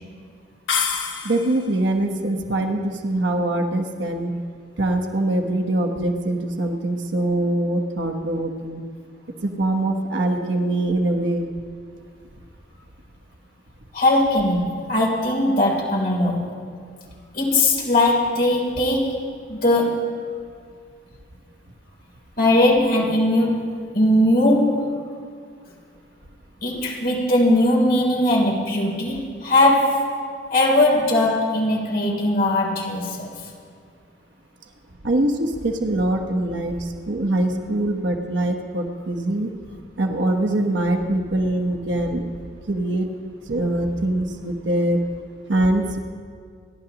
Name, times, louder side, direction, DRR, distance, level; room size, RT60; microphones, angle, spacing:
sound 1, 0.7-1.8, left 7 dB, 85° left, 1.2 m, -26 dB
voice 1, 1.2-4.3 4.8-8.8 9.4-11.5 35.0-39.5 40.0-42.3 42.7-43.1 43.4-45.0 45.5-46.0, right 1 dB, 90° right, 3 dB, 1.2 m, -23 dB
voice 2, 13.9-16.5 17.3-19.2 19.5-20.2 22.4-25.0 26.6-30.1 30.5-33.5, left 1 dB, 55° left, -3 dB, 3.3 m, -20 dB
29.0 x 11.5 x 3.0 m, 2.1 s
head